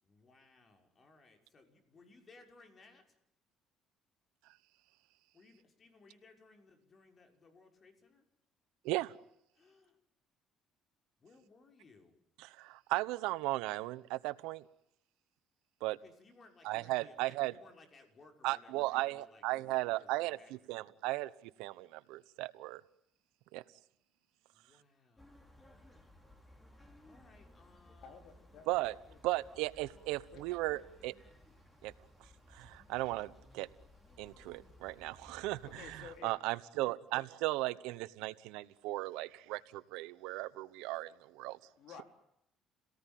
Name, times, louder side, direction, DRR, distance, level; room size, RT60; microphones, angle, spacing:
voice 1, 0.0-3.0 5.3-8.3 9.5-10.0 11.2-12.1 16.0-20.8 24.5-26.3 26.6-28.2, left 3 dB, 40° left, 4 dB, 6.1 m, -62 dB
voice 2, 12.4-14.6 15.8-16.0 16.6-17.5 18.4-20.4 20.7-21.3 21.6-22.8 23.5-23.6 28.7-28.9 29.2-31.1 31.8-31.9 32.5-33.7 34.2-41.6, right 19 dB, 85° right, 17 dB, 0.9 m, -36 dB
sound 1, 25.2-36.2, left 1 dB, 15° left, 5.8 m, -60 dB
voice 3, 28.0-29.7 30.3-30.4 35.6-36.4 41.8-42.0, left 6 dB, 70° left, 6 dB, 4.2 m, -53 dB
29.0 x 18.0 x 9.2 m, 0.78 s
supercardioid pair, 85°, 0 cm